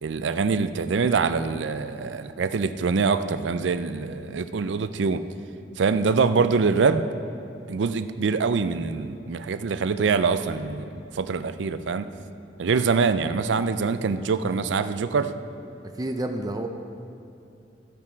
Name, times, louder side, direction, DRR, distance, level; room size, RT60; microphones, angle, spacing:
voice 1, 0.0-5.2 5.8-7.1 7.7-12.1 12.6-15.3, right 5 dB, 80° right, 11 dB, 0.4 m, -24 dB
voice 2, 16.0-16.7, right 1 dB, 20° right, 5 dB, 0.4 m, -29 dB
14.0 x 5.9 x 4.6 m, 2.7 s
head